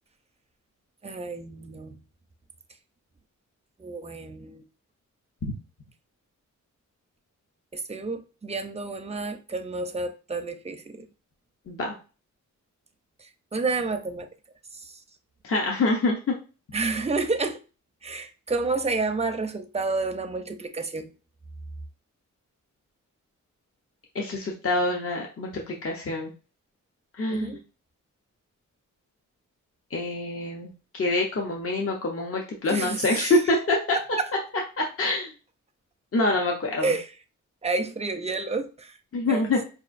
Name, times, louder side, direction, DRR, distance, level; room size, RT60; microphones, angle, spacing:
voice 1, 1.0-2.0 3.8-4.6 7.7-11.1 13.2-14.3 14.7-15.0 16.7-17.6 18.0-21.1 27.3-27.6 32.7-33.5 33.9-34.3 36.8-37.1 37.6-39.0 39.3-39.5, right 3 dB, 20° right, 0.4 m, -30 dB
voice 2, 15.4-16.2 24.1-26.3 27.2-27.6 29.9-34.0 34.8-35.3 36.1-37.0 39.1-39.6, left 2 dB, 45° left, 0.7 m, -26 dB
5.0 x 2.5 x 2.5 m
wide cardioid pair, 115°, 31 cm